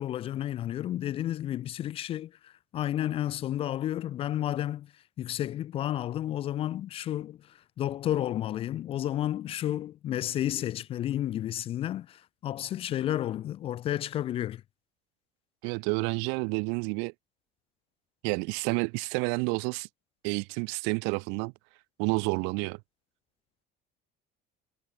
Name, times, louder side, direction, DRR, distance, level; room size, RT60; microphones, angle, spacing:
voice 1, 0.0-2.3 2.7-4.9 5.2-7.4 7.8-12.2 12.4-14.6, left 12 dB, 30° left, 0.4 m, -31 dB
voice 2, 15.6-17.1 18.2-19.9 20.2-21.5 22.0-22.8, right 38 dB, 80° right, 0.5 m, -29 dB
cardioid pair, 165°, 19 cm